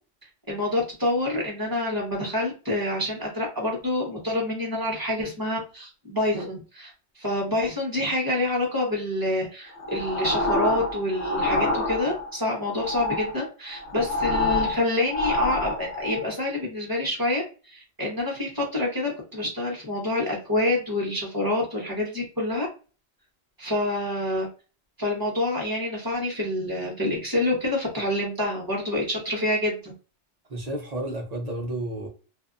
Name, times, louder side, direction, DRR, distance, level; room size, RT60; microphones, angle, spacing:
voice 1, 0.5-6.9 7.2-22.7 23.6-24.5 25.0-29.8, left 1 dB, 20° right, 1.0 m, -27 dB
sound 1, 9.8-12.4 12.7-16.2, left 2 dB, 60° left, 0.9 m, -27 dB
voice 2, 30.5-32.1, right 1 dB, 45° right, 0.6 m, -31 dB
2.6 x 2.3 x 2.4 m
omnidirectional pair, 1.2 m